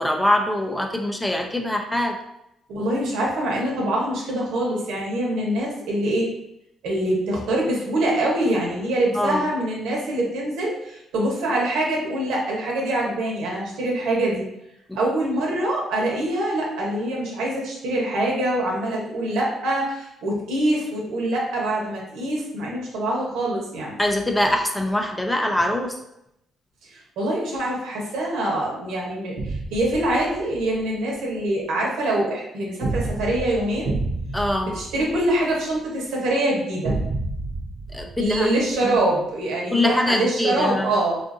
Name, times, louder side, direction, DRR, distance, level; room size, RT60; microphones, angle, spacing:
voice 1, 0.0-2.2 9.1-9.4 24.0-25.9 34.3-34.7 37.9-38.5 38.8-38.9 39.7-40.9, left 1 dB, 10° left, 3 dB, 0.5 m, -23 dB
voice 2, 2.7-6.3 6.8-14.5 15.0-23.9 26.9-33.9 34.7-37.0 38.2-41.2, right 1 dB, 90° right, -2 dB, 1.0 m, -24 dB
sound 1, 29.4-30.7 32.8-35.8 36.8-39.0, right 2 dB, 70° right, 0.5 m, -30 dB
3.7 x 2.5 x 2.5 m, 0.81 s
cardioid pair, 90°, 0 cm